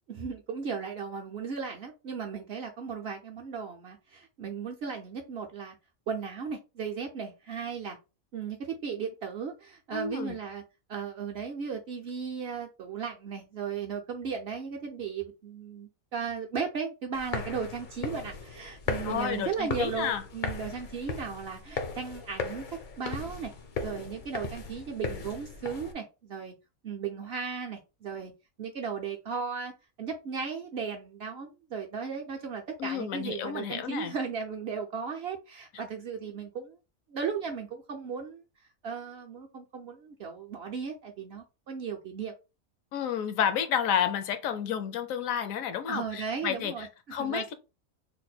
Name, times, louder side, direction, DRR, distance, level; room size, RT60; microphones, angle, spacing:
voice 1, 0.1-5.8 6.1-8.0 8.3-10.6 10.9-22.6 23.0-23.5 23.8-26.5 26.8-28.3 28.6-29.7 30.0-36.8 37.1-38.4 38.8-42.3 45.9-46.9 47.2-47.5, right 6 dB, 60° right, 0.7 m, -36 dB
voice 2, 9.9-10.3 19.0-20.2 32.8-34.1 42.9-47.5, left 8 dB, 75° left, 1.0 m, -31 dB
sound 1, 17.1-25.9, left 4 dB, 55° left, 0.5 m, -37 dB
3.3 x 2.1 x 4.0 m
omnidirectional pair, 1.5 m